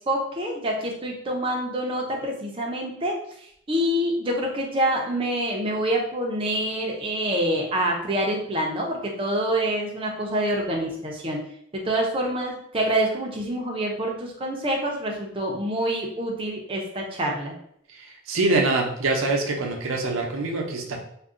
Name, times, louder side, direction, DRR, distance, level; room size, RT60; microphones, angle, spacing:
voice 1, 0.1-3.2 3.7-11.4 11.8-17.5, right 1 dB, 25° right, -1 dB, 0.5 m, -26 dB
voice 2, 17.9-21.0, right 2 dB, 80° right, 2 dB, 0.6 m, -24 dB
2.5 x 2.2 x 3.6 m, 0.70 s
head